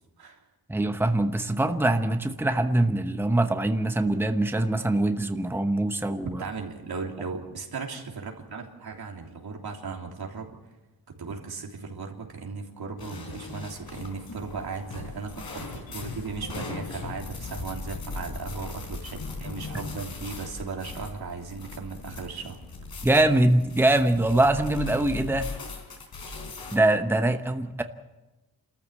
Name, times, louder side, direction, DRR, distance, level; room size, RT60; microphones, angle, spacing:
voice 1, 0.7-6.4 23.0-25.5 26.7-27.8, right 1 dB, 5° right, 7 dB, 1.0 m, -23 dB
voice 2, 6.4-10.5 11.1-22.6, right 4 dB, 90° right, 1 dB, 3.3 m, -37 dB
sound 1, 13.0-26.8, left 3 dB, 85° left, 4.1 m, -39 dB
29.0 x 14.0 x 8.2 m, 1.1 s
wide cardioid pair, 145°, 37 cm